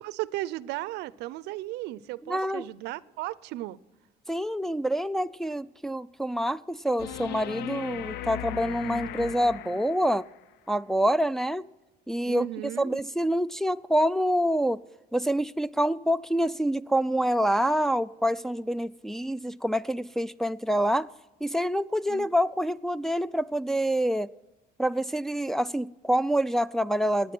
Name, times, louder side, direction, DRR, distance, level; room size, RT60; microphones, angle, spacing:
voice 1, 0.0-3.8 12.3-13.0 22.1-22.3, right 16 dB, 90° right, 0.5 m, -35 dB
voice 2, 2.3-2.6 4.3-10.3 10.7-11.7 12.1-12.5 12.8-14.8 15.1-21.1 21.4-24.3 24.8-27.3, equal, ahead, 0.3 m, -26 dB
sound 1, 7.0-10.3 13.0-13.1, left 12 dB, 80° left, 0.5 m, -37 dB
16.0 x 9.6 x 6.1 m
cardioid pair, 110°, 17 cm